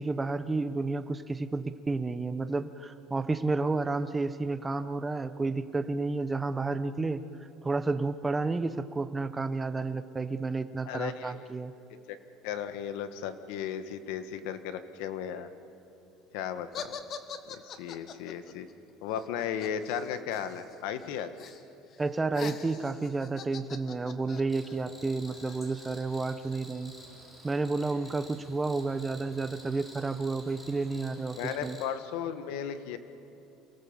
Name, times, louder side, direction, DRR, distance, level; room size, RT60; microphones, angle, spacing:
voice 1, 0.0-7.2 7.6-11.7 22.0-26.9 27.4-31.8, right 3 dB, 15° right, 12 dB, 0.9 m, -31 dB
voice 2, 10.8-11.4 12.1-12.2 12.4-15.5 16.3-17.0 17.5-18.7 19.0-21.3 31.3-33.0, left 8 dB, 80° left, 10 dB, 1.5 m, -35 dB
sound 1, 16.7-20.8 21.0-21.6 21.9-26.6, left 6 dB, 40° left, 1.5 m, -44 dB
Cricket, 24.5-31.9, equal, 10° left, 4.2 m, -51 dB
28.0 x 18.5 x 7.4 m, 3.0 s
cardioid pair, 130°, 0 cm